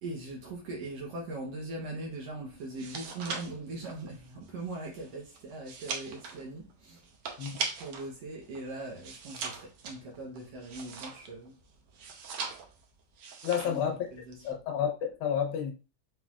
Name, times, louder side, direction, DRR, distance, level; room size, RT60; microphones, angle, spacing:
voice 1, 0.0-7.1 7.8-11.6 13.6-14.6, right 2 dB, 65° right, 1.9 m, -41 dB
sound 1, 2.6-8.1 8.4-11.5 11.9-12.8 13.2-13.9 14.1-14.5, right 5 dB, 90° right, 1.2 m, -40 dB
voice 2, 13.4-14.0 14.4-15.7, left 8 dB, 75° left, 2.2 m, -30 dB
5.7 x 3.2 x 2.4 m
omnidirectional pair, 3.6 m